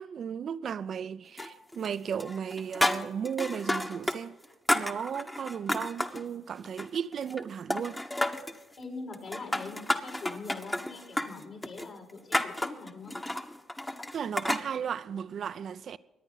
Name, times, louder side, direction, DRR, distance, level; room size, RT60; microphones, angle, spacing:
voice 1, 0.0-4.4 4.7-8.0 14.1-16.0, right 7 dB, 55° right, 0.6 m, -35 dB
sound 1, 1.4-1.9 2.2-4.2 4.4-6.2 6.6-7.4 7.7-8.6 9.1-14.7, left 1 dB, 15° left, 1.3 m, -31 dB
voice 2, 8.8-13.2, left 3 dB, 60° left, 5.2 m, -43 dB
24.0 x 10.0 x 4.1 m
hypercardioid pair, 55°, 0 cm